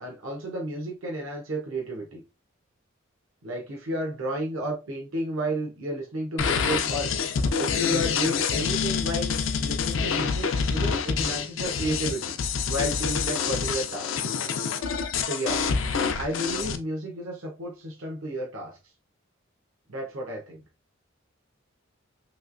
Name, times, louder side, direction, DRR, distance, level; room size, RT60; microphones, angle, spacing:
voice 1, 0.0-2.2 3.4-12.4 12.7-14.2 15.2-15.6 16.2-18.8 19.9-20.6, equal, 90° right, 0.8 m, -32 dB
sound 1, 6.4-16.8, left 6 dB, 70° left, 0.4 m, -27 dB
3.1 x 2.9 x 2.4 m
head